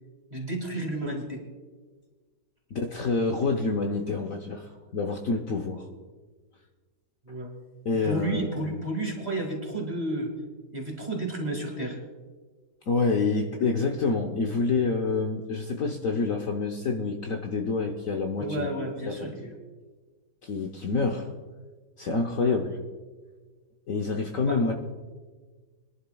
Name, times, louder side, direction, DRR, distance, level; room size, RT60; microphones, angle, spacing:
voice 1, 0.3-1.4 7.3-7.5 8.0-10.3 10.7-12.0 18.4-19.5 22.3-22.6 24.4-24.6, right 1 dB, 25° right, 1 dB, 2.1 m, -31 dB
voice 2, 2.7-5.9 7.3-7.4 7.8-8.6 12.9-18.7 19.0-19.4 20.4-21.3 22.0-22.8 23.9-24.7, left 4 dB, 55° left, 2 dB, 1.1 m, -27 dB
23.5 x 11.0 x 2.3 m, 1.4 s
omnidirectional pair, 1.9 m